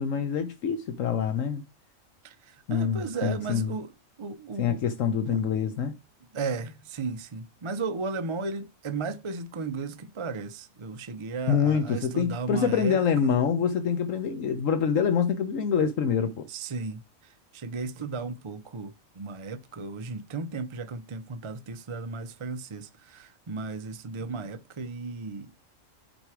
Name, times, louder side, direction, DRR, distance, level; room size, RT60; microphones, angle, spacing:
voice 1, 0.0-1.6 2.7-3.7 4.6-5.9 11.5-16.5, left 7 dB, 75° left, 1.1 m, -26 dB
voice 2, 2.2-3.9 4.2-4.8 5.3-5.4 6.3-13.3 16.5-25.5, right 4 dB, 45° right, 0.4 m, -35 dB
9.0 x 4.5 x 4.8 m
omnidirectional pair, 1.4 m